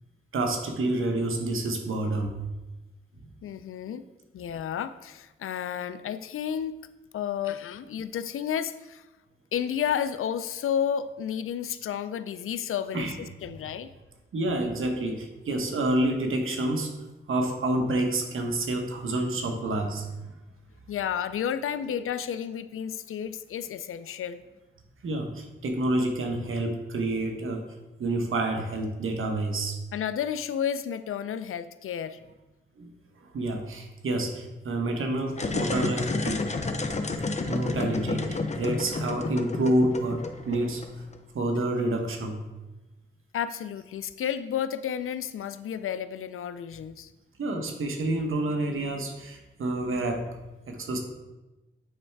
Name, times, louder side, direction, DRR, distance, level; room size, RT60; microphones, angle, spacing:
voice 1, 0.3-2.4 3.8-4.0 12.9-13.3 14.3-16.9 17.3-20.1 25.0-27.6 28.0-29.8 32.8-32.9 33.2-36.5 37.5-40.8 41.3-42.4 47.4-50.3 50.7-51.0, right 2 dB, 75° right, 3 dB, 1.1 m, -28 dB
voice 2, 3.4-4.0 4.3-6.7 7.1-9.0 9.5-13.9 20.9-24.4 29.9-32.2 43.3-47.1, left 8 dB, 85° left, 13 dB, 0.4 m, -31 dB
sound 1, 35.3-41.2, left 3 dB, 35° left, 0.6 m, -30 dB
8.8 x 3.3 x 4.6 m, 1.1 s
cardioid pair, 70°, 21 cm